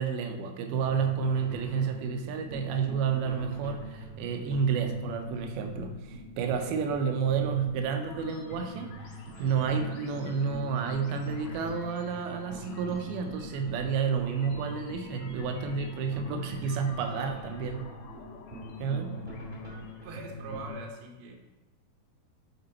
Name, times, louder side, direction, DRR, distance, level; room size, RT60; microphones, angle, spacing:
voice 1, 0.0-17.9 18.8-19.2, right 6 dB, 90° right, 5 dB, 2.5 m, -30 dB
sound 1, 0.7-20.7, left 1 dB, 5° right, 1.3 m, -43 dB
sound 2, 8.0-20.3, left 5 dB, 85° left, 2.5 m, -52 dB
voice 2, 19.8-21.3, right 2 dB, 70° right, 1 dB, 1.8 m, -42 dB
9.5 x 3.4 x 4.1 m, 1.1 s
omnidirectional pair, 4.3 m